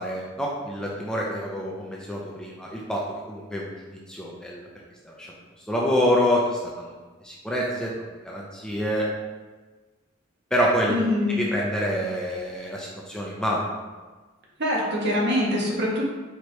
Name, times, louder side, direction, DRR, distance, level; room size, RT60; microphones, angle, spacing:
voice 1, 0.0-3.7 4.1-4.7 5.0-5.3 5.7-6.9 7.2-7.9 8.2-9.1 10.5-11.0 11.3-13.7, equal, 5° left, -4 dB, 0.4 m, -26 dB
voice 2, 10.9-11.4 14.6-16.0, left 1 dB, 55° right, -3 dB, 1.0 m, -24 dB
4.6 x 3.1 x 3.0 m, 1.3 s
head